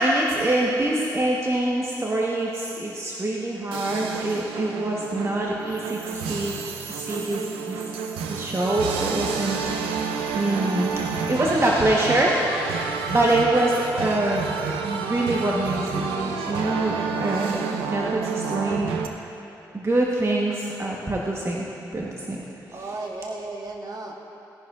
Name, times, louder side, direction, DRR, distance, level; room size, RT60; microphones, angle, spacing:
voice 1, 0.0-6.6 6.9-7.8 8.3-10.9 11.3-12.3 12.8-14.5 14.8-18.9 19.7-21.7 21.9-22.4, right 1 dB, 30° right, -3 dB, 1.3 m, -25 dB
sound 1, 3.7-19.1, right 5 dB, 90° right, 0.6 m, -29 dB
voice 2, 22.7-24.1, right 2 dB, 45° right, -1 dB, 1.7 m, -34 dB
17.0 x 10.5 x 2.6 m, 3.0 s
hypercardioid pair, 40°, 9 cm